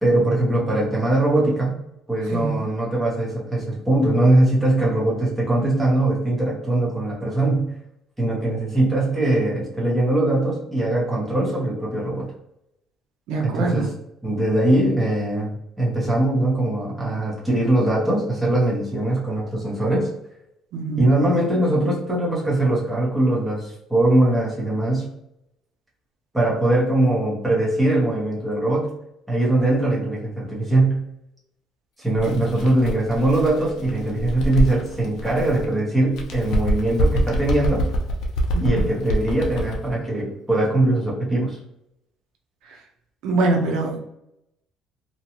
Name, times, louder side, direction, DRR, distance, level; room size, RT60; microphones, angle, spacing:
voice 1, 0.0-1.8 2.1-7.7 8.2-12.3 13.4-13.9 14.2-20.1 21.0-25.1 26.3-28.9 29.3-31.0 32.0-37.9 38.6-41.6, right 1 dB, 5° right, -6 dB, 0.8 m, -21 dB
voice 2, 2.3-2.6 13.3-13.9 20.7-21.1 38.5-38.9 43.2-44.0, right 3 dB, 75° right, 1 dB, 0.4 m, -23 dB
Bird, 32.1-35.7 36.1-39.9, equal, 60° left, 0.5 m, -25 dB
2.7 x 2.2 x 2.8 m, 0.80 s
cardioid pair, 175°, 0 cm